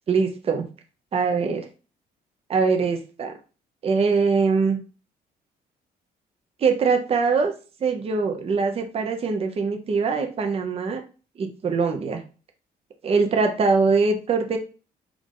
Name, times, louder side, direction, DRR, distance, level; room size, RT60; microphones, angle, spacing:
voice 1, 0.1-0.6 1.1-1.7 2.5-3.3 3.8-4.8 6.6-7.5 7.8-11.0 11.4-12.2 13.0-14.6, right 4 dB, 35° right, 4 dB, 0.7 m, -22 dB
4.7 x 2.5 x 3.7 m, 0.34 s
cardioid pair, 130°, 17 cm